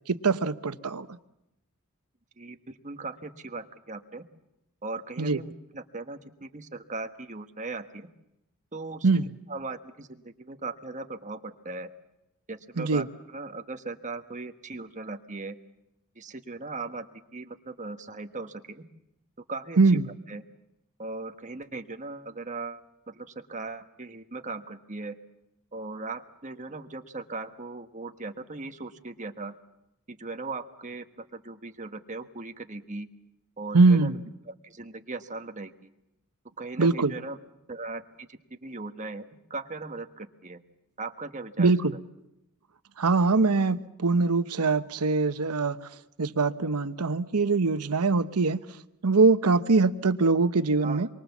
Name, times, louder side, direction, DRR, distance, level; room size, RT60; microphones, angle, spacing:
voice 1, 0.1-1.1 5.2-5.4 9.0-9.2 12.8-13.1 19.8-20.1 33.7-34.2 36.8-37.1 41.6-41.9 43.0-45.8 46.2-48.6 49.0-51.1, right 3 dB, 90° right, 1.0 m, -22 dB
voice 2, 2.4-4.2 4.8-8.1 8.7-9.1 9.5-11.9 12.5-15.6 16.1-18.8 19.5-19.8 20.3-20.4 21.0-22.8 23.1-25.1 25.7-29.5 30.1-33.1 33.6-34.1 34.5-35.9 36.6-37.4 37.7-40.6 41.0-41.7 50.8-51.1, right 3 dB, 35° right, 1.4 m, -38 dB
27.0 x 23.5 x 7.2 m
head